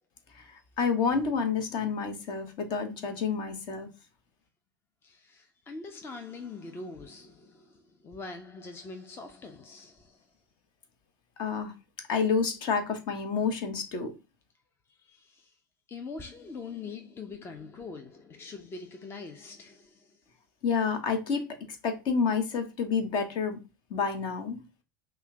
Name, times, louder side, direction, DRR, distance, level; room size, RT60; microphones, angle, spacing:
voice 1, 0.3-3.9 11.4-11.7 12.1-14.2 20.6-23.6 23.9-24.6, left 5 dB, 45° left, 1.1 m, -29 dB
voice 2, 5.0-10.3 14.9-15.6 15.9-20.2, left 4 dB, 20° left, 0.6 m, -43 dB
5.6 x 2.3 x 3.7 m
hypercardioid pair, 85°, 11 cm